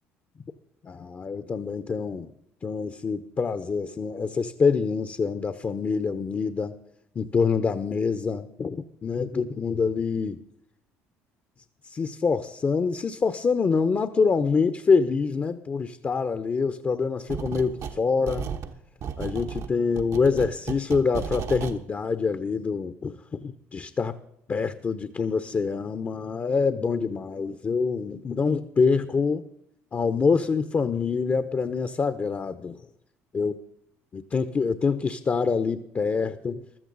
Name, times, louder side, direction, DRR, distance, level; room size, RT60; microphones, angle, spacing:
voice 1, 0.8-2.3 2.6-6.8 7.1-10.4 11.9-18.5 19.2-24.2 24.5-29.4 29.9-32.8 33.3-33.5 34.1-36.6, left 5 dB, 35° left, 11 dB, 0.9 m, -25 dB
sound 1, 17.3-18.0 18.3-21.8, right 7 dB, 55° right, 1.1 m, -34 dB
15.0 x 13.5 x 4.1 m, 0.74 s
hypercardioid pair, 65°, 6 cm